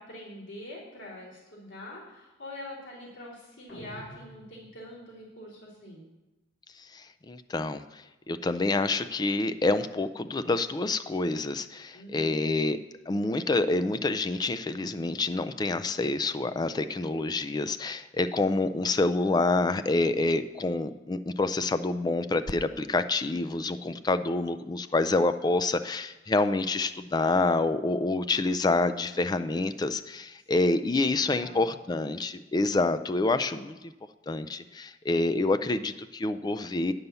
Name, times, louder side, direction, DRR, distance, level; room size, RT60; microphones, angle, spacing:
voice 1, 0.0-6.1 11.9-12.4 18.7-19.0 30.5-31.7, left 1 dB, 90° left, -6 dB, 3.1 m, -45 dB
sound 1, 3.7-5.1, equal, 65° left, 1.8 m, -48 dB
voice 2, 6.8-12.8 13.1-33.9 34.3-36.9, left 2 dB, 20° left, 11 dB, 0.4 m, -27 dB
9.4 x 5.5 x 6.8 m, 1.1 s
head